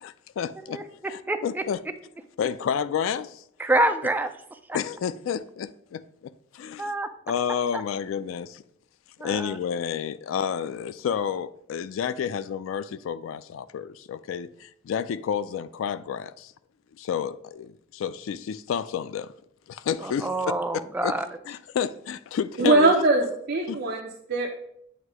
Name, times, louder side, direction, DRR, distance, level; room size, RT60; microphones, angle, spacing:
voice 1, 0.0-1.8 2.4-3.4 4.7-6.9 7.3-8.6 9.2-16.5 17.0-19.3 19.7-20.3 21.0-21.1 21.5-22.9 23.7-23.8, left 8 dB, 85° left, 0.3 m, -30 dB
voice 2, 0.7-1.6 3.6-4.3 6.8-7.1 7.7-7.8 9.2-9.6 20.0-21.3, right 1 dB, 10° right, 0.4 m, -27 dB
voice 3, 22.6-24.5, right 3 dB, 50° right, 0.6 m, -22 dB
7.9 x 2.7 x 4.7 m
head